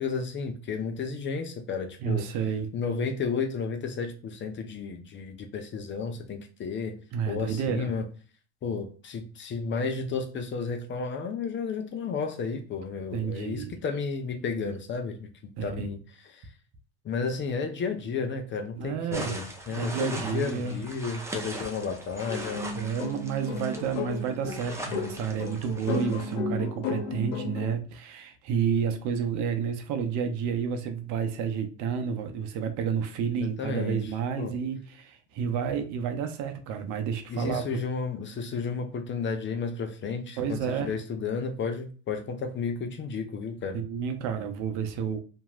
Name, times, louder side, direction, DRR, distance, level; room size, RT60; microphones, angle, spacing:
voice 1, 0.0-2.3 2.7-8.1 8.6-15.3 15.6-16.0 16.3-16.5 17.0-22.7 33.4-34.5 37.3-43.8, left 5 dB, 35° left, 0.6 m, -32 dB
voice 2, 2.0-2.7 7.1-7.9 13.1-13.7 15.6-15.9 18.8-19.3 19.7-20.8 22.7-37.7 40.4-40.9 43.7-45.2, right 7 dB, 60° right, 0.7 m, -30 dB
sound 1, 19.1-26.4, right 1 dB, 10° right, 0.6 m, -40 dB
sound 2, 22.3-27.7, left 4 dB, 75° left, 0.7 m, -34 dB
2.9 x 2.7 x 2.3 m
supercardioid pair, 90°, 34 cm